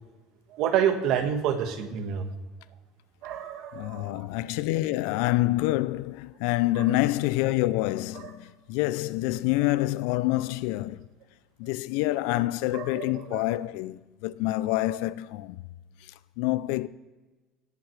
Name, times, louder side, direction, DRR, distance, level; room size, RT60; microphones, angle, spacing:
voice 1, 0.5-2.3 3.2-4.2 6.8-6.9 8.2-8.3 12.7-13.4, right 8 dB, 65° right, 1.4 m, -28 dB
voice 2, 3.7-11.1 11.6-15.6 16.0-16.9, left 17 dB, 75° left, 0.4 m, -27 dB
18.0 x 8.8 x 3.3 m
supercardioid pair, 90°, 0 cm